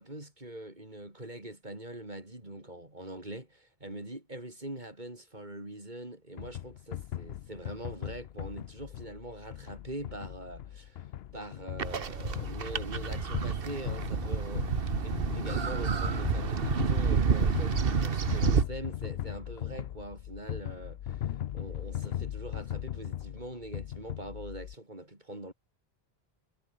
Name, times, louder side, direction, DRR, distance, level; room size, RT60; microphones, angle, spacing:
voice 1, 0.0-11.1 11.3-25.5, right 1 dB, 45° right, 5.2 m, -43 dB
sound 1, 6.4-24.8, left 11 dB, 80° left, 0.9 m, -38 dB
sound 2, 11.8-18.6, right 6 dB, 65° right, 1.4 m, -29 dB
omnidirectional pair, 1.1 m